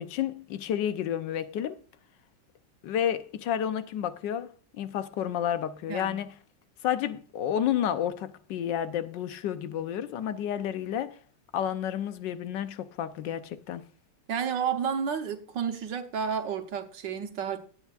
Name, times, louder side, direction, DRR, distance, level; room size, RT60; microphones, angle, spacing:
voice 1, 0.0-1.8 2.8-4.5 4.7-6.3 6.8-11.2 11.5-13.9, left 10 dB, 80° left, 1.4 m, -30 dB
voice 2, 14.3-17.6, right 7 dB, 80° right, 1.8 m, -31 dB
18.5 x 8.3 x 2.5 m
omnidirectional pair, 1.9 m